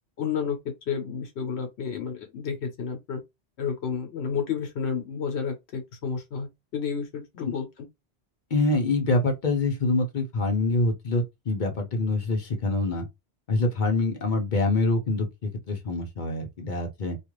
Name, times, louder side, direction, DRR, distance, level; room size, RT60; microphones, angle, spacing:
voice 1, 0.2-3.2 3.6-7.7, left 6 dB, 85° left, 1.0 m, -31 dB
voice 2, 8.5-13.1 13.5-17.2, left 2 dB, 55° left, 0.8 m, -25 dB
2.4 x 2.4 x 3.0 m
omnidirectional pair, 1.1 m